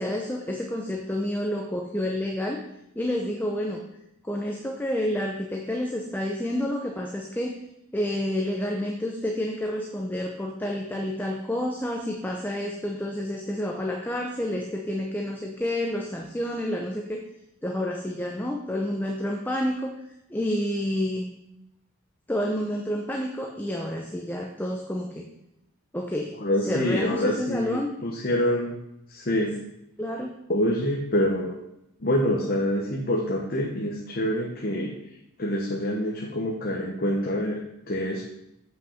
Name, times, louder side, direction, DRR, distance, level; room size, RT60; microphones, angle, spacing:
voice 1, 0.0-2.6 3.0-3.8 4.2-7.6 7.9-17.2 17.6-19.9 20.3-21.3 22.3-25.3 25.9-26.3 26.6-27.9 30.0-30.3, left 1 dB, 10° left, 1 dB, 0.6 m, -29 dB
voice 2, 26.4-28.8 29.1-29.6 30.5-31.5 32.0-34.9 35.4-37.6 37.9-38.2, left 1 dB, 40° left, -1 dB, 1.0 m, -26 dB
7.7 x 5.7 x 5.8 m, 0.81 s
head